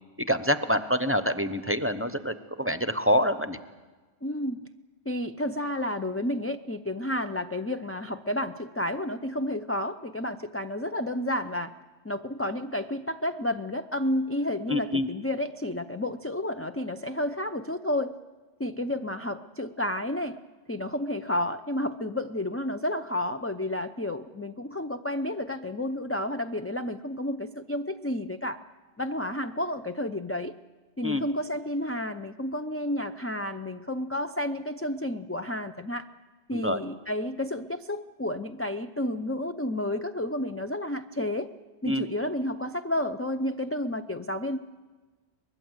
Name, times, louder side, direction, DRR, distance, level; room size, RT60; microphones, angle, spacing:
voice 1, 0.3-3.6 14.7-15.1 31.0-31.2 36.5-36.8 41.9-42.0, equal, 15° right, 10 dB, 0.8 m, -26 dB
voice 2, 4.2-4.6 5.1-11.7 12.0-18.1 18.6-20.4 20.7-28.6 29.0-30.5 31.0-36.1 36.5-41.5 41.8-44.6, left 1 dB, 15° left, 6 dB, 0.5 m, -31 dB
23.5 x 20.5 x 8.1 m, 1.3 s
omnidirectional pair, 1.1 m